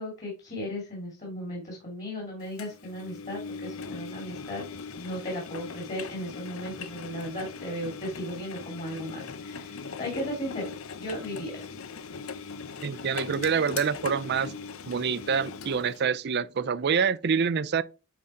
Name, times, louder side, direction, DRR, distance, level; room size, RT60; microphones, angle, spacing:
voice 1, 0.0-4.6 4.9-10.7 11.0-11.7 12.9-13.0, equal, 35° left, 2.6 m, -36 dB
Engine, 2.6-16.0, left 5 dB, 65° left, 0.7 m, -40 dB
voice 2, 12.8-14.5 14.9-17.8, right 6 dB, 50° right, 0.5 m, -26 dB
9.4 x 3.8 x 4.3 m
head